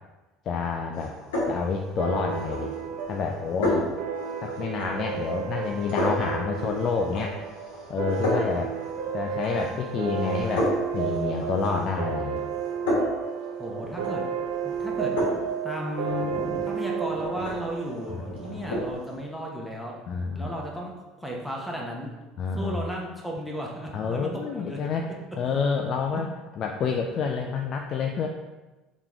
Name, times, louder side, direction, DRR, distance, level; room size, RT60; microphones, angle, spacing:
voice 1, 0.5-1.1 1.5-2.7 3.1-3.8 4.4-7.4 7.9-8.8 9.1-12.4 18.5-18.6 20.1-20.6 22.4-22.8 23.9-25.1 25.4-26.3 26.6-28.3, left 5 dB, 50° left, 2 dB, 0.4 m, -28 dB
sound 1, 0.9-19.2, left 1 dB, 85° left, 1.2 m, -33 dB
sound 2, 2.0-19.1, right 7 dB, 70° right, 0.3 m, -32 dB
voice 2, 13.6-14.2 14.6-20.0 20.3-20.9 21.2-22.1 22.6-25.0, equal, ahead, -2 dB, 0.9 m, -35 dB
3.7 x 3.1 x 3.5 m, 1.1 s
hypercardioid pair, 80°, 0 cm